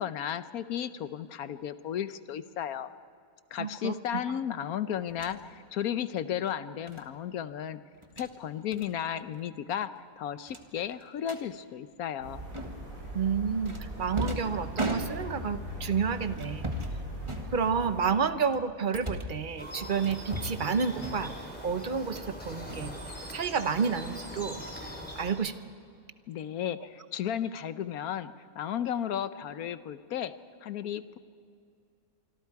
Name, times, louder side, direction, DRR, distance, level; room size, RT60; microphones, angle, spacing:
voice 1, 0.0-2.9 3.5-7.8 8.2-9.9 10.2-12.4 26.3-30.3 30.6-31.2, left 9 dB, 70° left, 13 dB, 1.1 m, -34 dB
voice 2, 3.6-4.2 13.1-16.7 17.5-21.3 21.6-22.9 23.3-24.6 25.2-25.5, right 6 dB, 40° right, 11 dB, 0.7 m, -30 dB
sound 1, 5.1-5.4 6.9-7.1 7.9-8.3 8.7-8.9 9.2-9.4 9.7-9.8 10.5-11.4 12.5-13.0 13.7-15.5 16.3-17.0 17.2-18.0 18.5-19.4 20.0-20.7 21.0-21.5 21.8-22.3 22.6-23.5, equal, 20° right, 1.5 m, -38 dB
sound 2, 12.2-18.1, equal, 60° right, 6.0 m, -40 dB
sound 3, 19.6-25.3, equal, 5° left, 3.6 m, -42 dB
25.5 x 25.5 x 4.7 m, 2.4 s
omnidirectional pair, 1.7 m